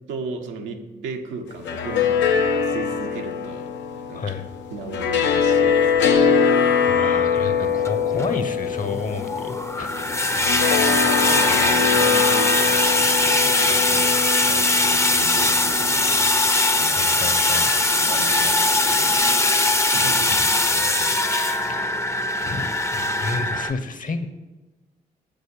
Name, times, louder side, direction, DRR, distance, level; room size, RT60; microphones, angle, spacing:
voice 1, 0.1-3.7 4.1-4.2 4.7-6.1 9.9-10.2 10.5-16.0 16.8-19.4 19.9-20.5 21.6-21.8, right 3 dB, 75° right, 4 dB, 0.9 m, -35 dB
sound 1, 1.5-16.7, left 6 dB, 65° left, 0.8 m, -23 dB
sound 2, 5.9-6.0 6.7-6.8 7.8-23.7, left 2 dB, 15° left, 0.7 m, -21 dB
voice 2, 6.9-10.4 10.7-11.1 16.9-17.7 20.3-20.4 20.7-21.9 22.4-24.3, left 4 dB, 40° left, 8 dB, 1.1 m, -31 dB
7.9 x 5.2 x 7.0 m, 1.2 s
hypercardioid pair, 40°, 20 cm